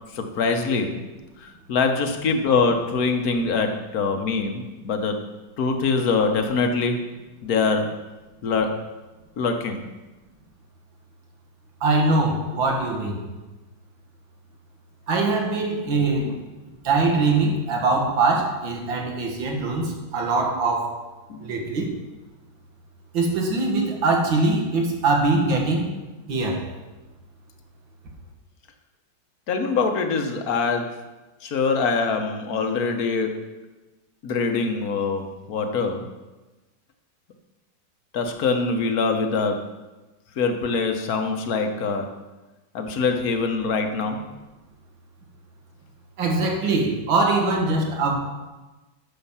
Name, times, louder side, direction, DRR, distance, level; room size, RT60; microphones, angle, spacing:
voice 1, 0.1-1.0 1.4-5.2 5.6-7.0 7.4-7.9 8.4-8.7 9.4-9.8 16.1-16.4 21.3-21.7 29.5-31.0 31.4-33.4 34.2-36.1 38.1-39.6 40.4-42.1 42.7-44.3, left 4 dB, 50° left, 5 dB, 1.4 m, -24 dB
voice 2, 11.8-13.2 15.1-16.3 16.8-21.0 21.4-21.9 23.1-25.9 26.3-26.7 46.2-48.1, right 3 dB, 70° right, 1 dB, 2.4 m, -22 dB
10.5 x 7.0 x 5.7 m, 1.1 s
omnidirectional pair, 2.3 m